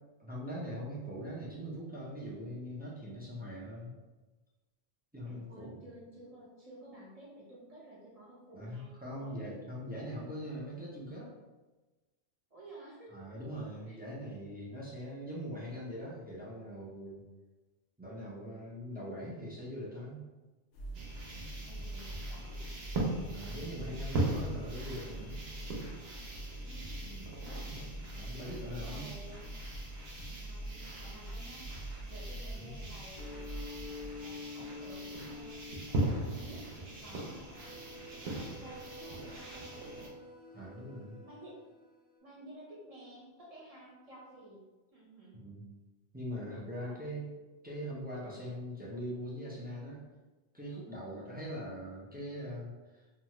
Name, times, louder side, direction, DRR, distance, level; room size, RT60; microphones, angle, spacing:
voice 1, 0.2-3.9 5.1-5.8 8.5-11.3 13.1-17.2 18.0-20.2 23.3-25.4 28.1-29.0 32.5-32.7 40.5-41.2 45.3-45.7 46.1-47.2 47.6-50.0 50.5-53.1, equal, 15° right, -6 dB, 0.3 m, -42 dB
voice 2, 5.2-9.4 10.0-10.1 12.5-13.4 13.9-14.0 21.6-22.7 26.6-27.8 28.6-29.5 30.3-31.7 32.1-35.6 35.9-37.8 38.2-40.2 41.2-41.6 42.2-45.4 46.8-47.1 51.0-51.3, right 1 dB, 35° right, -5 dB, 0.8 m, -53 dB
sound 1, 20.7-34.1, right 1 dB, 75° left, 0.8 m, -44 dB
sound 2, 20.9-40.1, right 2 dB, 70° right, 0.9 m, -40 dB
sound 3, 33.2-42.2, left 3 dB, 10° left, 0.9 m, -48 dB
2.7 x 2.3 x 2.9 m, 1.2 s
omnidirectional pair, 1.1 m